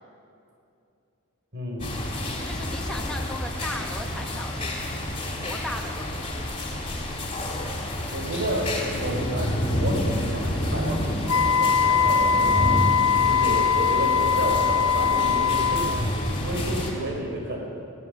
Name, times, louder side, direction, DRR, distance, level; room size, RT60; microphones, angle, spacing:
voice 1, 1.5-2.0 8.1-12.8 13.2-16.1 16.4-17.6, right 1 dB, 55° right, 0 dB, 5.4 m, -31 dB
sound 1, 1.8-16.9, left 1 dB, 25° left, 3.9 m, -29 dB
voice 2, 2.4-4.7 5.4-6.3, left 1 dB, 5° left, 0 dB, 1.5 m, -36 dB
Wind instrument woodwind instrument, 11.3-16.1, left 7 dB, 65° left, 0.6 m, -21 dB
20.0 x 16.5 x 8.1 m, 2.6 s
head